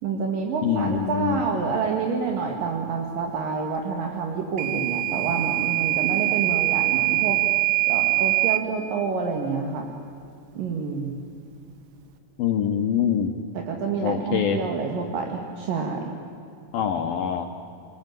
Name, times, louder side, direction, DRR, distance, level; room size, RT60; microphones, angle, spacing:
voice 1, 0.0-7.4 7.9-9.9 10.6-11.1 13.5-16.2, right 5 dB, 55° right, 2 dB, 2.7 m, -28 dB
voice 2, 0.6-1.4 12.4-13.3 14.0-14.6 16.7-17.5, left 8 dB, 80° left, 4 dB, 2.1 m, -24 dB
Microwave oven / Alarm, 4.6-8.7, right 22 dB, 80° right, 3.3 m, -23 dB
29.0 x 19.0 x 9.2 m, 2.7 s
omnidirectional pair, 5.8 m